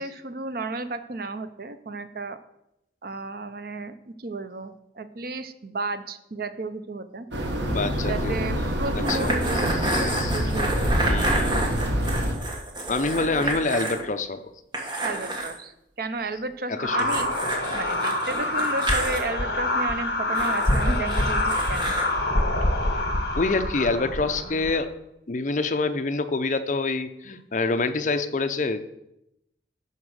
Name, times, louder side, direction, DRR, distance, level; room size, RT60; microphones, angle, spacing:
voice 1, 0.0-2.4 3.0-7.3 8.1-11.6 15.0-17.3 17.7-22.0, right 3 dB, 55° right, 11 dB, 0.7 m, -33 dB
sound 1, 7.3-12.3, equal, 80° right, 1.6 m, -26 dB
voice 2, 7.7-8.4 8.9-10.5 11.0-11.7 12.9-14.4 16.7-17.1 23.3-24.9 25.3-28.8, left 3 dB, 45° left, 9 dB, 0.6 m, -27 dB
sound 2, 9.0-14.0 14.3-14.4 14.7-15.5 17.0-19.2 20.3-22.1, right 1 dB, 25° right, 1.6 m, -29 dB
sound 3, 16.8-24.8, left 1 dB, 60° left, 1.7 m, -26 dB
11.0 x 4.9 x 6.4 m, 0.83 s
head